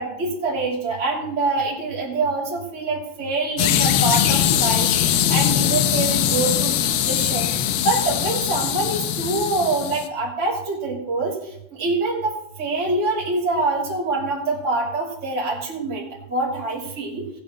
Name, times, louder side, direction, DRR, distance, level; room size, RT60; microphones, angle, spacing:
voice 1, 0.0-17.3, right 3 dB, 20° right, -6 dB, 2.6 m, -25 dB
sound 1, 3.6-10.1, left 10 dB, 80° left, 2.7 m, -21 dB
19.0 x 8.7 x 3.1 m, 0.77 s
omnidirectional pair, 4.7 m